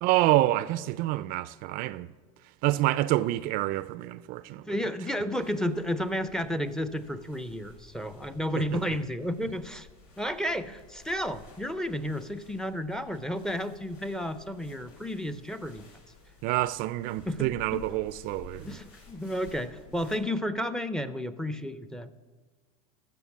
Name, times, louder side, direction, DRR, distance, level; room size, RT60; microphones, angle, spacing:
voice 1, 0.0-2.1 2.6-4.8 8.5-8.8 16.4-18.8, right 16 dB, 50° right, 0.4 m, -27 dB
voice 2, 4.7-9.9 10.2-15.8 17.3-17.8 18.6-22.1, equal, 5° left, 0.5 m, -32 dB
sound 1, 5.4-20.2, left 4 dB, 80° left, 3.8 m, -54 dB
14.5 x 5.8 x 7.2 m
supercardioid pair, 115°, 19 cm